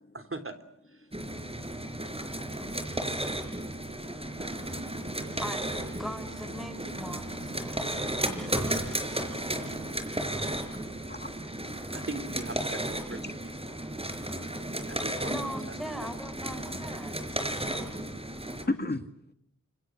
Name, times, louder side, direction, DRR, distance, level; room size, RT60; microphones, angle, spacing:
voice 1, 0.1-0.5 0.9-1.1 4.4-4.8 11.9-13.7 14.9-16.1, right 2 dB, 45° right, 8 dB, 3.6 m, -41 dB
sound 1, 1.1-18.6, right 1 dB, 20° right, 5.1 m, -34 dB
sound 2, 4.3-9.9, right 3 dB, 80° right, 5.4 m, -47 dB
voice 2, 6.0-7.9 8.2-8.6 15.3-17.1, equal, ahead, 12 dB, 4.7 m, -40 dB
voice 3, 18.6-19.1, left 2 dB, 35° left, 7 dB, 2.0 m, -36 dB
30.0 x 28.0 x 6.4 m, 0.77 s
wide cardioid pair, 65°, 30 cm